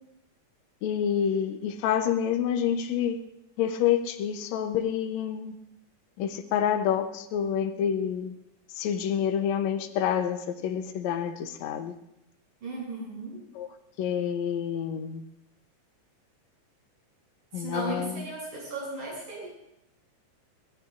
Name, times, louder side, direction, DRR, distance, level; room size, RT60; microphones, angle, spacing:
voice 1, 0.8-3.2 3.6-5.6 6.2-8.3 8.8-11.9 13.6-13.7 14.0-15.2 17.5-18.2, left 9 dB, 65° left, 7 dB, 2.0 m, -28 dB
voice 2, 12.6-13.4 17.5-19.5, right 2 dB, 80° right, -5 dB, 9.0 m, -36 dB
25.5 x 17.5 x 2.6 m, 0.82 s
omnidirectional pair, 3.8 m